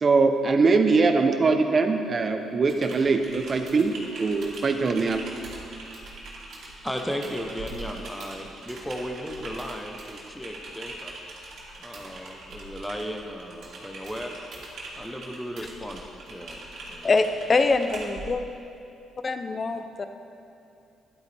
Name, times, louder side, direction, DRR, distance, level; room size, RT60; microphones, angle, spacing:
voice 1, 0.0-3.9 4.2-5.2, right 4 dB, 40° right, 6 dB, 0.9 m, -22 dB
Typing, 2.6-18.3, right 2 dB, 65° right, 2.5 m, -42 dB
voice 2, 6.8-11.1 11.8-14.4 14.9-17.1, equal, 5° left, 3 dB, 1.0 m, -35 dB
voice 3, 17.0-18.4 19.2-20.1, left 3 dB, 35° left, 8 dB, 0.7 m, -24 dB
12.5 x 11.0 x 3.5 m, 2.7 s
cardioid pair, 90°, 0 cm